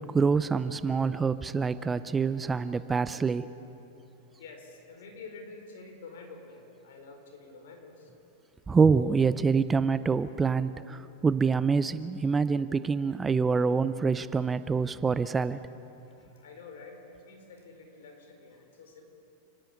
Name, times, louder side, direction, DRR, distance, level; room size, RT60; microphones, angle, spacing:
voice 1, 0.0-3.5 8.7-15.6, right 5 dB, 15° right, 14 dB, 0.6 m, -26 dB
voice 2, 4.4-8.2 16.1-19.0, left 4 dB, 75° left, 3 dB, 4.6 m, -48 dB
30.0 x 10.5 x 8.5 m, 3.0 s
hypercardioid pair, 115°, 0 cm